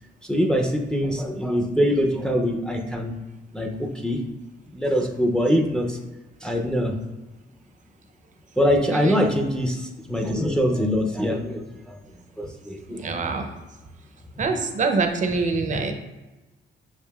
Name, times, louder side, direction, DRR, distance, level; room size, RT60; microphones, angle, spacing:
voice 1, 0.2-3.1 3.5-4.2 4.7-6.0 6.4-7.0 8.6-11.9 12.4-13.1, equal, 5° left, 1 dB, 0.5 m, -23 dB
voice 2, 8.9-9.2 13.0-13.5 14.4-15.9, right 4 dB, 40° right, 5 dB, 0.6 m, -25 dB
6.6 x 2.5 x 2.3 m, 1.1 s
cardioid pair, 90°, 20 cm